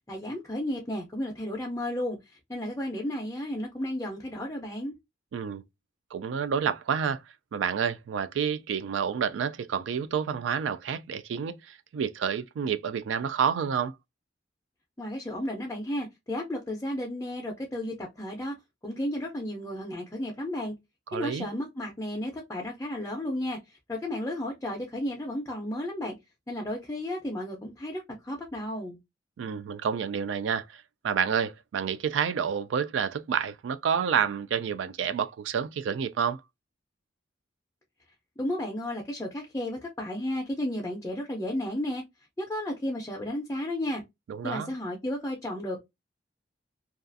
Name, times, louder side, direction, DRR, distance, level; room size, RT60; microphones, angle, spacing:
voice 1, 0.1-2.2 2.5-4.9 15.0-18.6 18.8-20.8 21.1-23.6 23.9-26.1 26.5-29.0 38.4-42.0 42.4-44.0 44.4-45.8, left 1 dB, 15° left, 0.5 m, -33 dB
voice 2, 5.3-5.6 6.1-7.2 7.5-13.9 21.1-21.5 29.4-36.4 44.3-44.7, right 7 dB, 85° right, 0.3 m, -29 dB
2.4 x 2.3 x 2.5 m
head